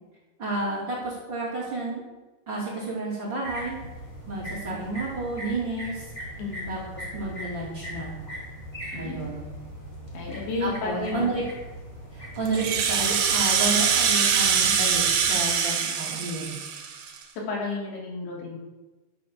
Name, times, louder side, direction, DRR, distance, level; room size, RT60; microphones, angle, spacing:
voice 1, 0.4-2.0 2.5-3.8 4.3-6.0 6.7-8.1 8.9-9.5 10.6-11.4 12.1-16.6, right 2 dB, 30° right, -6 dB, 2.9 m, -31 dB
sound 1, 3.4-15.4, equal, 10° left, 2.2 m, -39 dB
voice 2, 6.4-6.7 8.9-9.3 10.1-11.4 17.5-18.5, left 3 dB, 80° left, -2 dB, 5.2 m, -32 dB
Rattle (instrument), 12.5-17.2, right 7 dB, 60° right, 2.1 m, -23 dB
11.0 x 7.4 x 7.2 m, 1.2 s
omnidirectional pair, 5.1 m